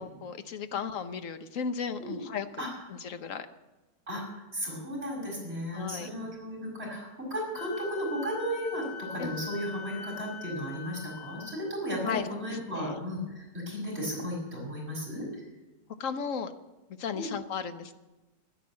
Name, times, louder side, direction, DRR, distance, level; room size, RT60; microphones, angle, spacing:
voice 1, 0.0-2.6 3.0-3.5 5.7-6.1 9.2-9.3 12.0-12.3 12.7-13.0 16.0-16.5 17.0-17.9, left 6 dB, 55° left, 10 dB, 1.1 m, -35 dB
voice 2, 4.1-15.4 17.1-17.3, equal, 35° right, -3 dB, 5.7 m, -35 dB
Wind instrument woodwind instrument, 7.6-11.6, left 7 dB, 25° left, 1.9 m, -42 dB
11.5 x 11.0 x 8.5 m, 1.1 s
omnidirectional pair, 1.9 m